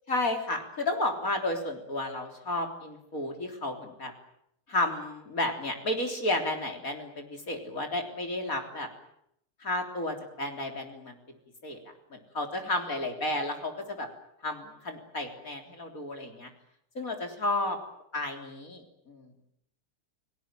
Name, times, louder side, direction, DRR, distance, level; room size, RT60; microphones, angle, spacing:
voice 1, 0.1-4.1 4.7-8.9 9.6-11.2 11.6-11.8 12.1-14.1 14.4-16.5 17.0-17.8 18.1-19.3, left 2 dB, 40° left, 4 dB, 4.0 m, -32 dB
30.0 x 19.0 x 9.1 m, 0.74 s
omnidirectional pair, 2.3 m